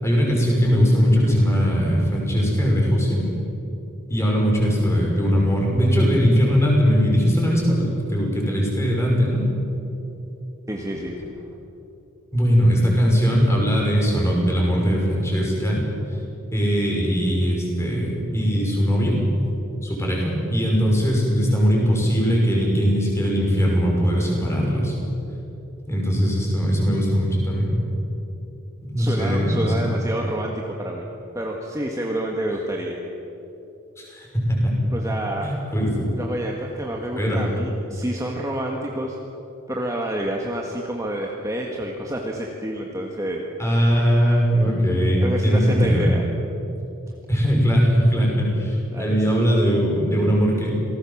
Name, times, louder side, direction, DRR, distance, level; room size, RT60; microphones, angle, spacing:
voice 1, 0.0-3.3 4.1-9.4 12.3-15.8 16.5-19.2 19.8-24.9 25.9-27.7 28.8-29.7 34.0-34.7 35.4-36.1 37.2-37.4 43.6-46.1 47.3-50.8, equal, 15° left, -2 dB, 6.1 m, -20 dB
voice 2, 10.7-11.3 29.0-31.1 31.3-33.0 34.9-35.5 36.2-39.2 39.7-43.4 45.2-46.2 48.9-49.2, right 1 dB, 15° right, 0 dB, 1.7 m, -28 dB
27.5 x 19.0 x 7.3 m, 3.0 s
head